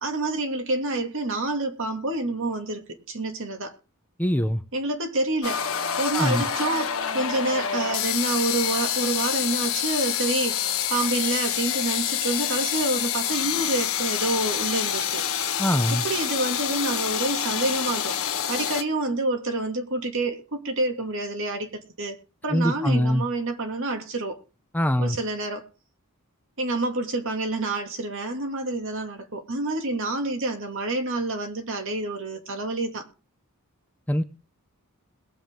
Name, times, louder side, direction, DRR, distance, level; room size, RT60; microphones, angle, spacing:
voice 1, 0.0-3.7 4.7-5.6 6.0-10.6 10.9-15.3 16.0-18.2 18.5-22.2 22.4-24.4 25.0-25.6 26.6-33.1, right 2 dB, 60° right, 2.5 m, -28 dB
voice 2, 4.2-4.6 6.1-6.4 15.6-16.0 22.5-23.3 24.7-25.2 34.1-34.2, equal, 5° left, 0.7 m, -23 dB
sound 1, 5.4-18.8, left 9 dB, 65° left, 1.3 m, -27 dB
21.5 x 7.5 x 3.8 m
head